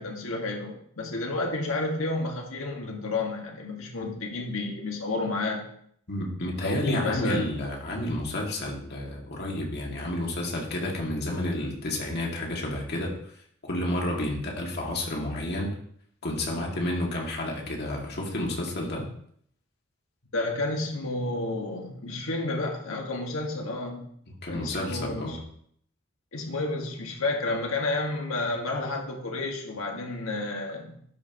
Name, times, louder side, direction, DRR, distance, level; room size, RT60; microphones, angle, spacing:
voice 1, 0.0-5.7 6.6-7.5 20.3-24.1 24.5-25.4 26.3-31.0, left 2 dB, 90° left, 0 dB, 1.7 m, -31 dB
voice 2, 6.1-13.2 13.6-15.7 16.2-19.1 24.3-25.4, left 1 dB, 55° left, -1 dB, 2.2 m, -30 dB
12.0 x 5.4 x 3.0 m, 0.65 s
head